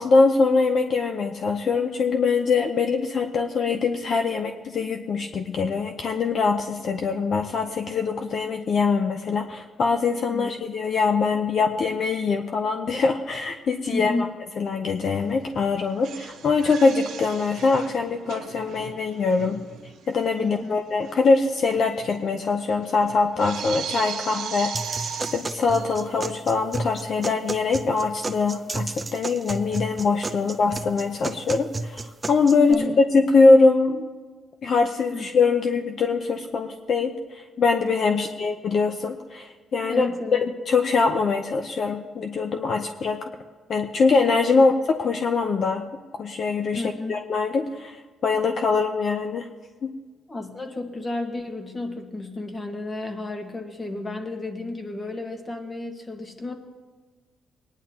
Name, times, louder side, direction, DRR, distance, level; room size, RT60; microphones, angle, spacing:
voice 1, 0.0-14.1 14.6-19.6 20.1-34.0 34.6-40.1 40.3-43.3 43.7-44.7 45.0-45.8 46.2-46.8 47.1-48.0 48.2-49.5 49.8-49.9, left 4 dB, 55° left, 5 dB, 0.8 m, -23 dB
voice 2, 13.9-14.3 20.4-20.7 32.7-33.0 35.1-35.3 38.1-38.3 39.9-40.4 44.6-44.7 46.7-47.1 50.3-56.5, left 2 dB, 25° left, 4 dB, 1.6 m, -32 dB
sound 1, 15.0-15.2 15.5-20.1 20.4-20.5 21.0-21.2 21.5-26.3, right 8 dB, 85° right, 1.3 m, -37 dB
sound 2, 24.7-32.7, right 3 dB, 25° right, 0.6 m, -33 dB
20.0 x 10.0 x 2.9 m, 1.4 s
cardioid pair, 85°, 0 cm